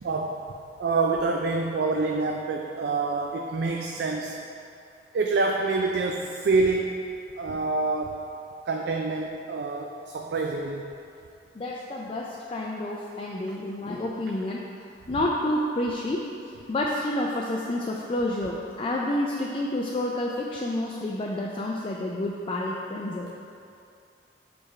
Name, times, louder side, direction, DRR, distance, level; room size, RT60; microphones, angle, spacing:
voice 1, 0.0-0.4 0.8-4.4 5.1-7.0 7.4-8.2 8.7-10.8, right 3 dB, 65° right, 1 dB, 0.3 m, -26 dB
voice 2, 11.5-14.6 15.1-16.3 16.7-23.3, left 1 dB, 30° left, -3 dB, 0.3 m, -29 dB
6.6 x 3.4 x 4.2 m, 2.6 s
head